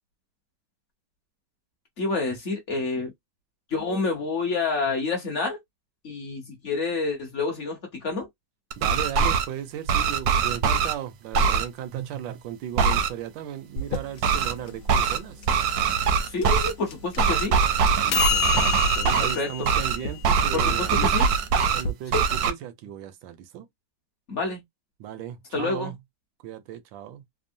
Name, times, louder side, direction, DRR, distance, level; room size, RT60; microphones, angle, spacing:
voice 1, 2.0-3.1 3.7-5.6 6.0-8.3 16.3-17.6 19.2-19.7 20.5-21.3 22.1-22.2 24.3-24.6 25.5-25.9, left 3 dB, 50° left, 1.1 m, -28 dB
sound 1, 8.7-9.4 9.9-10.9 11.3-11.6 12.8-13.1 14.2-14.5 14.9-15.2 15.5-16.7 17.2-19.4 19.6-20.0 20.2-21.8 22.1-22.5, right 6 dB, 70° right, 0.9 m, -22 dB
voice 2, 8.8-15.5 18.0-21.3 21.7-23.7 25.0-26.0 26.4-27.2, right 10 dB, 90° right, 1.3 m, -36 dB
sound 2, 13.8-21.9, left 9 dB, 75° left, 0.7 m, -31 dB
3.4 x 2.0 x 2.6 m
omnidirectional pair, 2.0 m